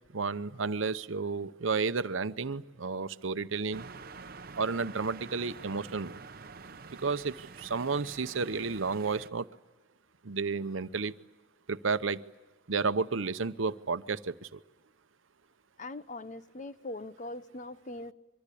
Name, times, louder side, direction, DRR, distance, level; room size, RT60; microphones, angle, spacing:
voice 1, 0.1-3.9 4.6-6.2 6.9-9.5 10.2-11.1 11.7-12.2 12.7-14.6, right 4 dB, 80° right, 0.8 m, -32 dB
sound 1, 3.7-9.3, right 4 dB, 50° right, 0.9 m, -47 dB
voice 2, 15.8-18.1, left 2 dB, 40° left, 0.8 m, -41 dB
25.5 x 24.0 x 8.5 m
head